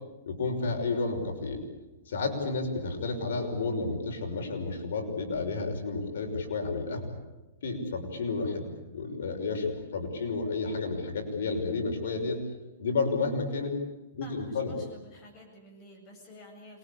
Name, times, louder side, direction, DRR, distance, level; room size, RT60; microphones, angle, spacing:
voice 1, 0.3-1.6 2.1-7.2 7.6-12.4 12.8-13.7 14.1-14.7, left 3 dB, 75° left, 3 dB, 6.0 m, -31 dB
voice 2, 14.2-16.8, left 1 dB, 20° left, 1 dB, 7.9 m, -50 dB
28.0 x 22.0 x 8.7 m, 1.1 s
hypercardioid pair, 165°, 0 cm